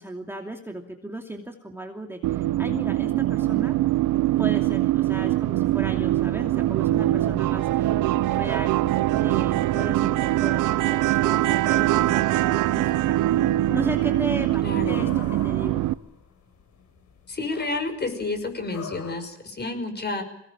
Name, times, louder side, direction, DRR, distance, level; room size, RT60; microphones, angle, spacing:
voice 1, 0.0-3.8 4.4-8.0 8.3-8.8 9.2-15.9, right 1 dB, 10° right, 2 dB, 2.7 m, -36 dB
sound 1, 2.2-15.9, right 15 dB, 85° right, 0.8 m, -23 dB
sound 2, 14.1-19.2, left 6 dB, 70° left, 5.4 m, -44 dB
voice 2, 14.6-15.1 17.3-20.2, left 3 dB, 35° left, 8 dB, 5.7 m, -30 dB
22.0 x 18.5 x 8.8 m, 0.83 s
cardioid pair, 90°, 30 cm